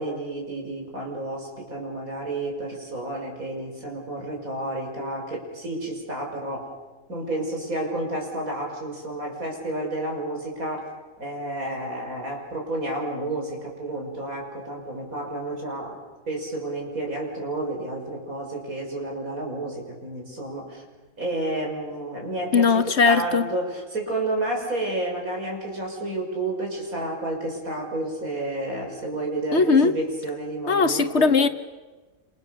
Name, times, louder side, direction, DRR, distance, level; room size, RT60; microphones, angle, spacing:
voice 1, 0.0-6.7 7.1-10.9 11.2-16.0 16.3-20.8 21.2-31.3, right 1 dB, 85° right, 6.5 m, -30 dB
voice 2, 22.5-23.5 29.5-29.9 30.7-31.5, left 5 dB, 55° left, 1.4 m, -19 dB
28.5 x 28.0 x 6.8 m
omnidirectional pair, 1.4 m